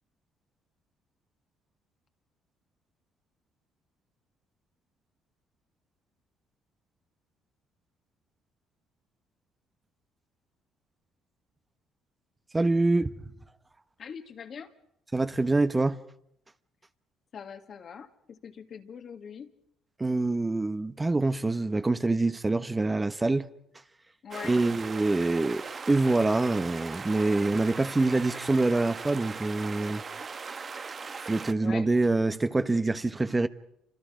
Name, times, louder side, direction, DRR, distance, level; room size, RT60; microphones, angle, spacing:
voice 1, 12.5-13.1 15.1-16.0 20.0-23.5 24.4-30.0 31.3-33.5, right 2 dB, 20° right, 1.1 m, -25 dB
voice 2, 14.0-14.7 17.3-19.5 24.2-24.6 31.6-31.9, left 7 dB, 55° left, 2.0 m, -42 dB
sound 1, 24.3-31.5, right 5 dB, 40° right, 1.2 m, -39 dB
28.5 x 26.0 x 5.1 m
supercardioid pair, 70°, 0 cm